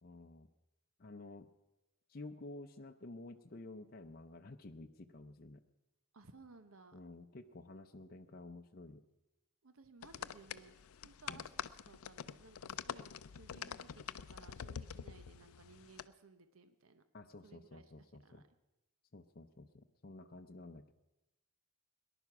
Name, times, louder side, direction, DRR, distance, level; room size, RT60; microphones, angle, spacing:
voice 1, 0.0-0.5 1.0-1.5 2.1-5.6 6.9-9.0 11.3-11.5 17.1-18.4 19.1-20.9, left 2 dB, 45° left, 5 dB, 0.6 m, -52 dB
voice 2, 6.1-7.0 9.6-10.8 11.0-13.9 14.3-17.0 17.4-18.5, right 3 dB, 75° right, 10 dB, 0.9 m, -60 dB
sound 1, 10.0-16.1, left 8 dB, 90° left, 0.5 m, -46 dB
19.0 x 11.0 x 6.0 m, 0.97 s
head